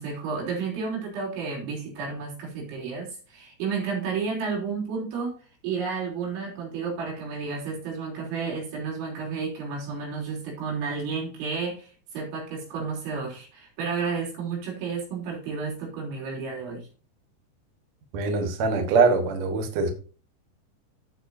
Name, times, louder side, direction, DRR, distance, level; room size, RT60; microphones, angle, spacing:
voice 1, 0.0-5.4 5.6-16.9, right 5 dB, 85° right, 6.0 m, -31 dB
voice 2, 18.1-19.9, right 4 dB, 70° right, 1.7 m, -23 dB
15.5 x 5.7 x 2.7 m
omnidirectional pair, 5.2 m